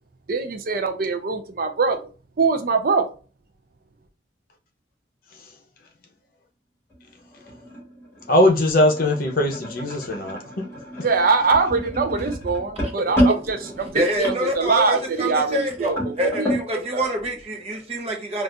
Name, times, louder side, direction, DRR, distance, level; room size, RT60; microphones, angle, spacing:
voice 1, 0.3-2.1 2.4-3.1 11.0-17.1, right 4 dB, 50° right, 0.5 m, -23 dB
sound 1, 6.9-16.7, equal, 15° left, 1.9 m, -29 dB
voice 2, 8.3-10.7, left 1 dB, 50° left, 0.8 m, -20 dB
voice 3, 13.9-18.4, equal, 35° right, 0.8 m, -26 dB
4.1 x 2.4 x 2.4 m
head